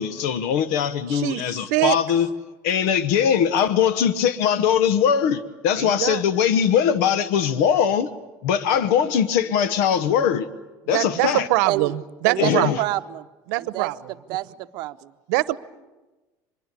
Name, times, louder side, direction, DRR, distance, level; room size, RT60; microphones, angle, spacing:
voice 1, 0.0-2.3 2.6-8.1 8.4-10.5 10.9-11.5 12.4-12.8, left 8 dB, 85° left, 1.1 m, -21 dB
voice 2, 1.1-1.4 1.7-2.0 5.8-6.2 10.9-12.7 13.5-14.1 15.3-15.6, right 19 dB, 85° right, 0.9 m, -23 dB
voice 3, 12.8-13.2 13.5-15.1, right 16 dB, 55° right, 0.8 m, -28 dB
24.5 x 22.0 x 8.3 m
cardioid pair, 155°, 9 cm